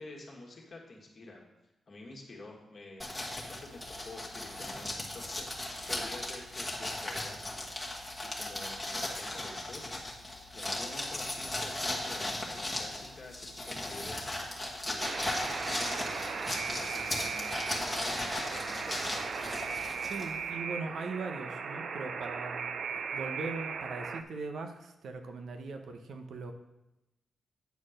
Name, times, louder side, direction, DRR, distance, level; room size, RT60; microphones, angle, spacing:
voice 1, 0.0-1.4 1.9-10.0 10.5-17.9 18.5-19.3, left 2 dB, 35° left, -1 dB, 1.6 m, -49 dB
sound 1, 3.0-20.5, left 1 dB, 10° left, 1.4 m, -37 dB
Alarm, 15.0-24.2, right 6 dB, 55° right, 0.5 m, -37 dB
voice 2, 20.0-26.5, right 3 dB, 75° right, 5 dB, 0.8 m, -40 dB
9.3 x 4.3 x 6.4 m, 0.95 s
wide cardioid pair, 175°, 0 cm